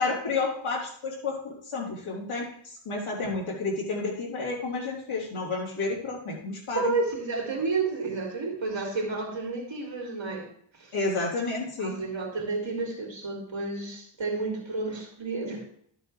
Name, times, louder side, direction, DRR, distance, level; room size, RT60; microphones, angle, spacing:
voice 1, 0.0-6.9 10.9-12.0, left 3 dB, 90° left, -3 dB, 3.7 m, -31 dB
voice 2, 6.7-10.5 10.7-10.9 11.8-15.6, right 3 dB, 60° right, -1 dB, 2.6 m, -31 dB
13.0 x 7.6 x 3.3 m, 0.64 s
wide cardioid pair, 70°, 49 cm